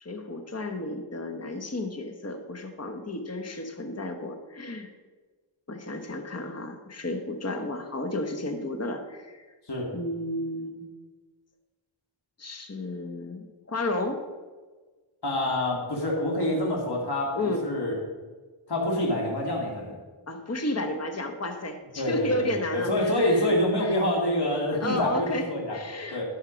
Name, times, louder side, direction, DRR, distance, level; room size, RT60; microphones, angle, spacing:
voice 1, 0.0-4.9 5.7-9.5 9.9-10.9 12.4-14.2 17.3-17.7 20.3-24.0 24.8-26.2, left 1 dB, 30° left, 5 dB, 1.1 m, -32 dB
voice 2, 15.2-17.9 18.7-19.9 22.0-25.7 26.1-26.2, left 1 dB, 50° left, -3 dB, 2.3 m, -26 dB
12.0 x 6.4 x 5.1 m, 1.3 s
wide cardioid pair, 55°, 49 cm